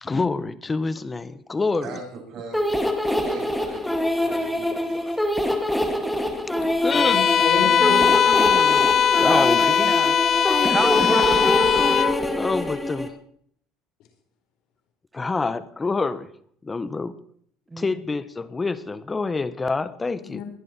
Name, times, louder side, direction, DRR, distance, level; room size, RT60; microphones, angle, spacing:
voice 1, 0.0-2.0 4.9-5.1 6.8-7.2 9.2-9.9 10.4-10.6 11.2-11.4 12.3-13.1 15.1-16.3 16.6-17.1 17.8-20.4, left 3 dB, 20° left, 15 dB, 1.2 m, -27 dB
voice 2, 1.8-6.0, right 4 dB, 55° right, 0 dB, 7.6 m, -41 dB
sound 1, 2.5-13.1, left 1 dB, 5° left, 2.2 m, -24 dB
voice 3, 6.5-8.1 20.2-20.4, left 7 dB, 65° left, 4 dB, 4.3 m, -31 dB
Bowed string instrument, 6.9-12.2, left 8 dB, 40° left, 0.9 m, -19 dB
voice 4, 7.6-8.9 9.2-10.2 10.7-11.4 17.7-18.0, right 2 dB, 15° right, 18 dB, 0.8 m, -29 dB
21.5 x 11.0 x 4.5 m, 0.64 s
supercardioid pair, 105°, 0 cm